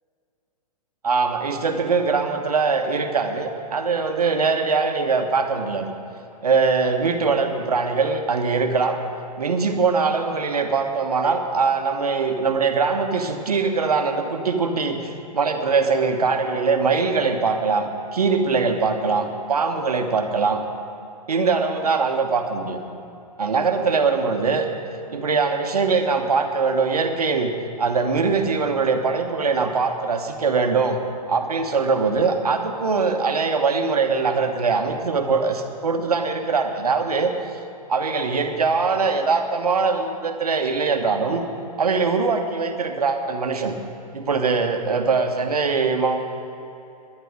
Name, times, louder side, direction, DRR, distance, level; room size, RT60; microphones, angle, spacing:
voice 1, 1.0-5.9 6.4-9.0 9.4-20.6 21.3-22.8 23.4-24.7 25.1-27.5 27.8-31.0 31.3-37.3 37.9-41.5 41.8-43.8 44.1-46.2, right 4 dB, 65° right, 6 dB, 1.3 m, -22 dB
17.5 x 11.0 x 4.8 m, 2.8 s
figure-of-eight pair, 115°, 21 cm